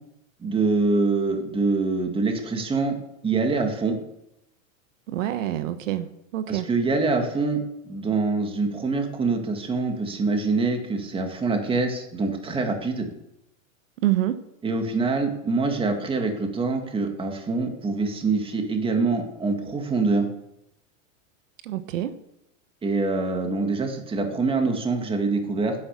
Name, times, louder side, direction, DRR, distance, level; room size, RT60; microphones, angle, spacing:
voice 1, 0.4-3.0 3.2-4.0 6.5-7.6 7.9-13.1 14.6-20.3 22.8-25.8, right 3 dB, 15° right, 4 dB, 2.1 m, -25 dB
voice 2, 5.1-6.7 14.0-14.4 21.6-22.1, right 13 dB, 70° right, 10 dB, 1.3 m, -26 dB
11.0 x 10.0 x 8.4 m, 0.82 s
supercardioid pair, 145°, 40 cm